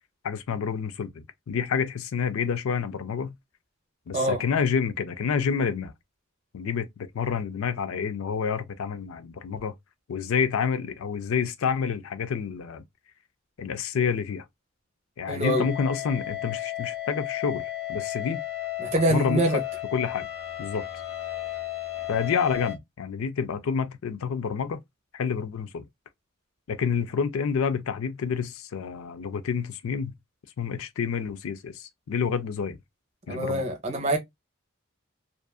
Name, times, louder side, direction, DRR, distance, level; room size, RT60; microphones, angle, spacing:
voice 1, 0.2-3.3 4.1-5.9 6.5-9.7 10.1-12.8 13.6-14.4 15.2-18.4 19.1-19.6 19.9-20.3 20.6-20.8 22.1-24.8 25.1-25.8 26.7-30.1 30.6-32.8 33.3-33.6, left 6 dB, 85° left, 0.4 m, -28 dB
voice 2, 15.3-15.7 18.8-19.6 33.3-34.2, right 1 dB, 30° right, 0.7 m, -25 dB
sound 1, 15.4-22.8, left 13 dB, 50° left, 1.0 m, -34 dB
2.5 x 2.4 x 2.3 m
head